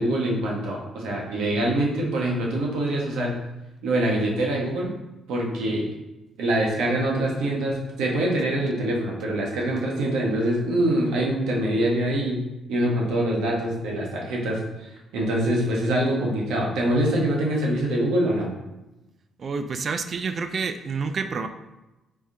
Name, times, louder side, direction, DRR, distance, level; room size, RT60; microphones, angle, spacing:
voice 1, 0.0-3.4 3.8-4.9 5.3-5.9 6.4-12.4 12.7-18.5, right 1 dB, 90° right, -2 dB, 1.1 m, -24 dB
voice 2, 19.4-21.5, right 5 dB, 50° right, 8 dB, 0.4 m, -28 dB
4.8 x 3.4 x 2.8 m, 0.99 s
cardioid pair, 90°, 0 cm